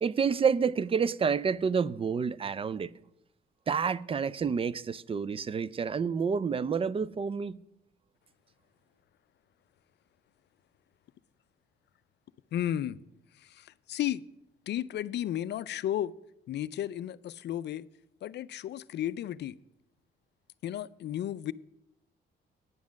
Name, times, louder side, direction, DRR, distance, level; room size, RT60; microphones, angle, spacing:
voice 1, 0.0-2.9 3.7-7.6, right 6 dB, 30° right, 0.4 m, -29 dB
voice 2, 12.5-13.0 13.4-14.2 14.7-16.1 16.5-17.9 18.2-19.6 20.6-21.5, left 11 dB, 60° left, 0.4 m, -33 dB
9.5 x 7.3 x 6.3 m
cardioid pair, 90°, 20 cm